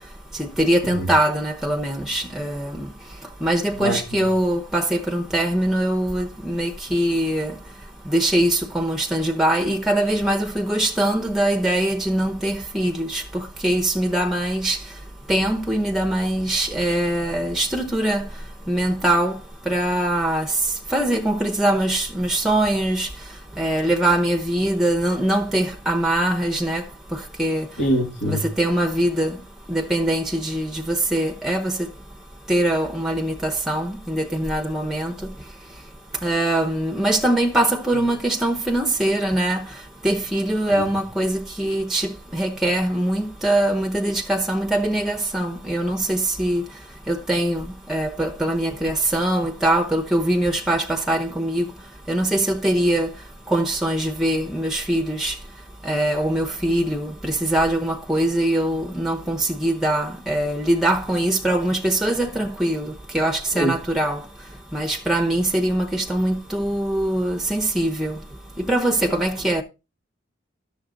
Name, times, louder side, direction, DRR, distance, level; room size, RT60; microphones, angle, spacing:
voice 1, 0.3-2.9 3.4-7.6 8.1-14.8 15.3-18.2 18.7-19.4 19.7-23.1 23.6-26.8 27.1-27.7 28.3-29.4 29.7-31.9 32.5-35.3 36.2-39.6 40.0-46.6 47.1-51.7 52.1-53.1 53.5-55.4 55.8-64.3 64.7-68.2 68.7-69.6, right 1 dB, ahead, 0.9 m, -22 dB
voice 2, 27.8-28.4 63.5-63.7, equal, 65° left, 2.1 m, -22 dB
12.0 x 7.0 x 3.9 m
head